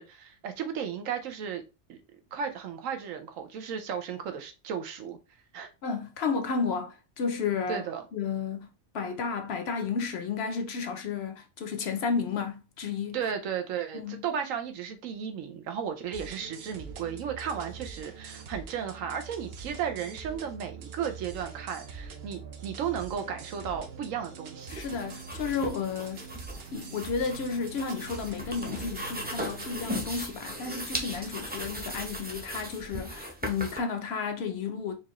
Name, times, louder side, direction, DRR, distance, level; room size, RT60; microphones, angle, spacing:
voice 1, 0.0-1.6 1.9-2.0 2.3-5.2 5.5-5.7 7.7-8.0 13.1-24.8, right 8 dB, 90° right, 1.1 m, -34 dB
voice 2, 5.8-7.9 8.1-8.7 8.9-13.3 13.9-14.2 24.7-26.3 26.7-35.0, left 5 dB, 60° left, 0.8 m, -32 dB
sound 1, 16.1-29.8, right 5 dB, 60° right, 0.8 m, -44 dB
sound 2, 24.6-33.8, equal, 10° right, 0.5 m, -38 dB
4.6 x 2.4 x 3.0 m
omnidirectional pair, 1.3 m